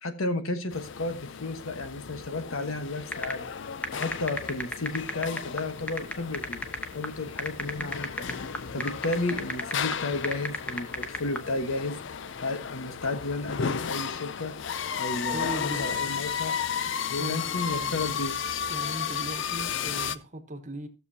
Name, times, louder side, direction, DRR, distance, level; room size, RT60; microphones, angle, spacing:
voice 1, 0.0-3.5 3.9-6.6 6.9-8.3 8.7-12.0 12.4-14.5 14.9-16.6 17.1-18.4, left 2 dB, 80° left, 1.3 m, -32 dB
sound 1, 0.7-20.2, left 7 dB, 60° left, 0.5 m, -34 dB
sound 2, 3.1-11.5, left 1 dB, 5° left, 0.9 m, -34 dB
voice 2, 15.3-16.1 17.2-18.4 18.7-20.9, right 1 dB, 35° right, 1.2 m, -39 dB
15.0 x 6.9 x 2.7 m
head